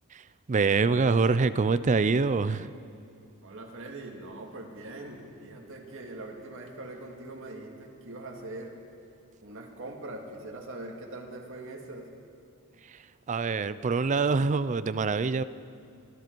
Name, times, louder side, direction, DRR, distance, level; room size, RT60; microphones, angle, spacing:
voice 1, 0.5-2.7 12.9-13.0 13.3-15.4, right 4 dB, 35° right, 14 dB, 0.4 m, -25 dB
voice 2, 3.4-8.7 9.4-12.1, right 2 dB, 65° right, 1 dB, 2.0 m, -42 dB
23.5 x 12.0 x 4.6 m, 2.5 s
head